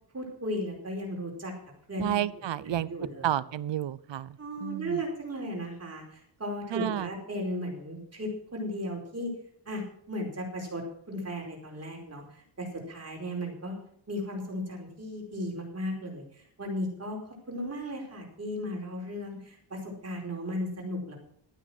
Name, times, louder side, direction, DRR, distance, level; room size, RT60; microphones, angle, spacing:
voice 1, 0.1-1.5 1.9-3.3 4.4-9.3 9.7-13.8 14.1-17.2 17.5-21.2, equal, 35° right, 0 dB, 4.6 m, -36 dB
voice 2, 2.0-2.9 3.2-5.0 6.7-7.1, right 12 dB, 70° right, 18 dB, 0.7 m, -31 dB
13.0 x 9.2 x 6.2 m, 0.65 s
wide cardioid pair, 135°, 46 cm